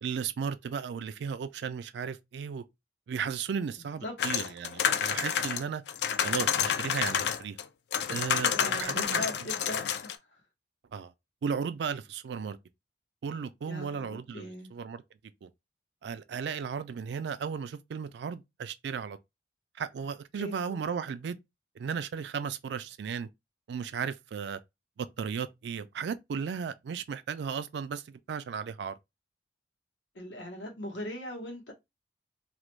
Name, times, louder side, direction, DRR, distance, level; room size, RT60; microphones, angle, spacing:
voice 1, 0.0-2.6 3.1-5.8 6.2-7.6 8.1-9.3 10.9-11.1 11.4-12.6 13.2-15.0 15.4-15.5 16.0-19.2 19.8-21.4 21.8-23.3 23.7-24.6 25.0-28.9, right 6 dB, 70° right, 0.3 m, -35 dB
voice 2, 4.0-4.5 8.5-10.2 13.7-14.7 20.4-20.5 30.1-31.7, left 1 dB, 80° left, 1.0 m, -40 dB
sound 1, 4.2-7.6 7.9-10.2, left 8 dB, 65° left, 0.3 m, -29 dB
2.4 x 2.1 x 3.0 m
head